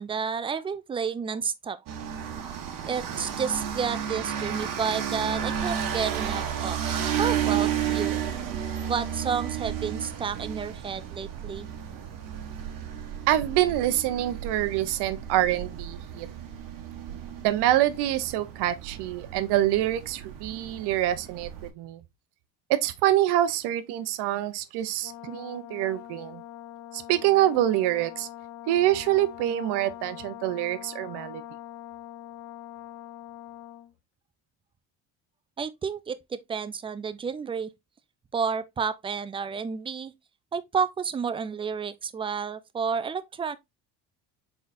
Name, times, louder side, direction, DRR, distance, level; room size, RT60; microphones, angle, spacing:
voice 1, 0.0-1.8 2.9-6.8 7.2-8.2 8.9-11.7 35.6-37.7 38.3-40.1 40.5-43.6, right 6 dB, 15° right, 0.3 m, -31 dB
sound 1, 1.9-21.7, right 9 dB, 50° right, 1.1 m, -33 dB
voice 2, 13.3-16.3 17.4-22.0 22.8-26.4 26.9-28.3 28.7-31.4, right 13 dB, 70° right, 0.7 m, -26 dB
Brass instrument, 25.0-33.9, left 12 dB, 75° left, 0.8 m, -43 dB
4.0 x 3.9 x 2.5 m
supercardioid pair, 80°, 41 cm